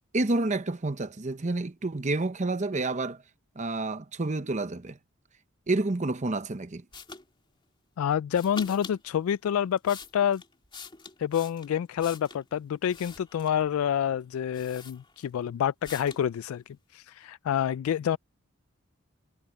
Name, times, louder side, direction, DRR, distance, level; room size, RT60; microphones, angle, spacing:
voice 1, 0.1-3.2 3.6-5.0 5.7-6.8, right 2 dB, 35° right, 0.8 m, -29 dB
sound 1, 6.9-7.2 8.3-9.0 9.6-12.4 12.9-13.7 14.2-14.3 14.5-15.4 15.8-16.3, left 5 dB, 25° left, 2.4 m, -45 dB
voice 2, 8.0-10.4 11.2-18.2, left 9 dB, 85° left, 0.3 m, -28 dB
head